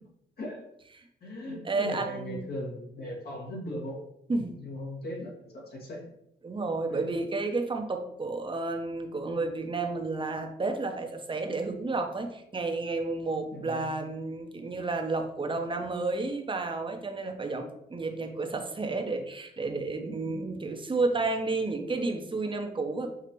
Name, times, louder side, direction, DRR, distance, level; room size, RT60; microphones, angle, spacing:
voice 1, 0.4-0.7 1.2-4.0 4.3-6.0 6.9-7.1 13.5-13.9 20.3-20.7, left 1 dB, 60° left, -3 dB, 1.8 m, -39 dB
voice 2, 1.6-2.4 4.3-4.5 6.4-23.1, right 3 dB, 25° right, 4 dB, 0.8 m, -31 dB
6.0 x 2.8 x 3.1 m, 0.75 s
cardioid pair, 70°, 18 cm